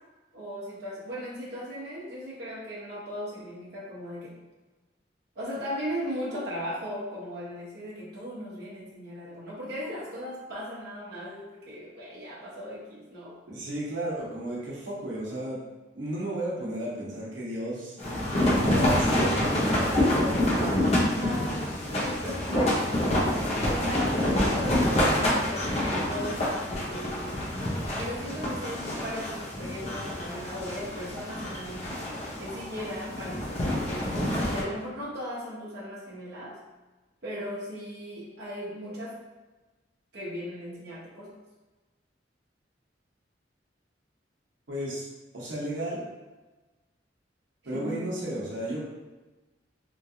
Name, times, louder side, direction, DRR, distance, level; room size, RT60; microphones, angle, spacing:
voice 1, 0.3-4.3 5.4-13.4 21.0-23.2 23.7-27.5 28.0-32.0 32.4-36.5 37.2-39.1 40.1-41.3 47.7-48.0, equal, 60° right, -7 dB, 0.8 m, -37 dB
voice 2, 13.5-15.6 15.9-17.9 18.3-20.5 44.7-45.0 45.3-46.1 47.6-48.8, right 1 dB, 90° right, -6 dB, 0.9 m, -33 dB
sound 1, 18.0-34.6, left 1 dB, 35° left, 0.6 m, -27 dB
3.1 x 2.5 x 2.7 m, 1.2 s
head